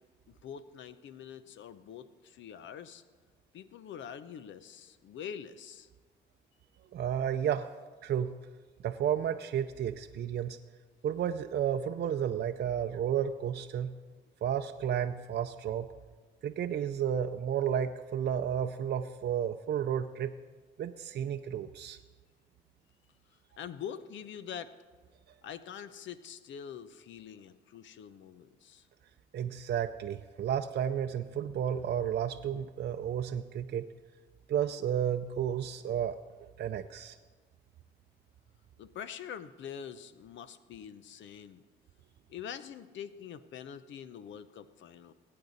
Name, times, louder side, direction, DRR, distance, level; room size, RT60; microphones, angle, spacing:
voice 1, 0.3-3.0 3.5-5.9 23.6-24.7 25.4-28.9 38.8-41.6 42.3-45.1, left 8 dB, 70° left, 13 dB, 0.7 m, -45 dB
voice 2, 6.9-7.7 8.0-8.4 8.8-10.6 11.0-13.9 14.4-15.9 16.4-20.3 20.8-22.0 29.3-33.9 34.5-36.2 36.6-37.1, right 9 dB, 55° right, 6 dB, 0.5 m, -32 dB
20.0 x 8.7 x 4.0 m, 1.4 s
cardioid pair, 90°, 20 cm